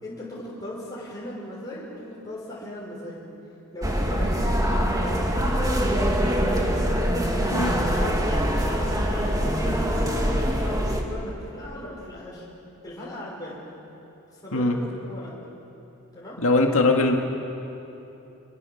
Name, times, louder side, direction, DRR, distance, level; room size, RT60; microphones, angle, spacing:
voice 1, 0.0-3.2 3.7-6.6 7.4-12.5 12.8-13.6 14.3-15.3 16.1-16.4, left 1 dB, 15° left, -6 dB, 5.9 m, -38 dB
sound 1, 3.8-11.0, equal, 15° right, 2.3 m, -24 dB
voice 2, 16.4-17.2, left 2 dB, 65° left, 2 dB, 2.2 m, -21 dB
27.5 x 23.0 x 7.3 m, 2.9 s
head